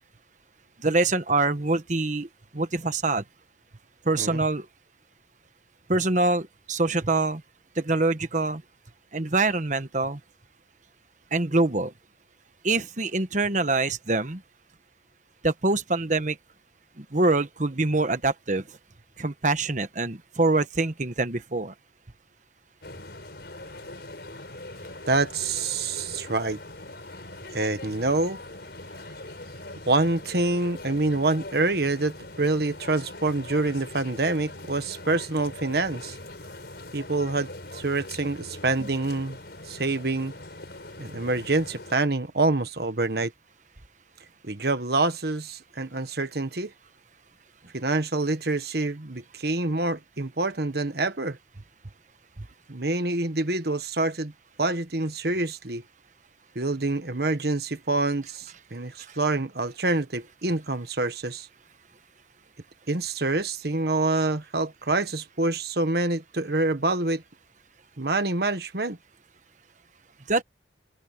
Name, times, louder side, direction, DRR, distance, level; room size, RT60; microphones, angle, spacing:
voice 1, 0.8-3.2 4.0-4.7 5.9-7.4 7.7-8.6 9.1-10.2 11.3-11.9 12.6-14.4 15.4-16.4 17.0-18.8 19.2-21.7 38.8-38.9 52.4-52.5 59.0-59.2 70.3-70.4, right 2 dB, 45° right, 1.3 m, -25 dB
sound 1, 22.8-41.9, left 2 dB, 60° left, 5.8 m, -42 dB
voice 2, 25.1-26.6 27.5-28.4 29.9-36.2 36.9-39.4 39.7-40.3 41.0-43.3 44.4-46.7 47.7-51.4 52.7-54.3 54.6-55.8 56.5-61.5 62.9-67.2 68.0-69.0, right 2 dB, 60° right, 1.5 m, -26 dB
open air
head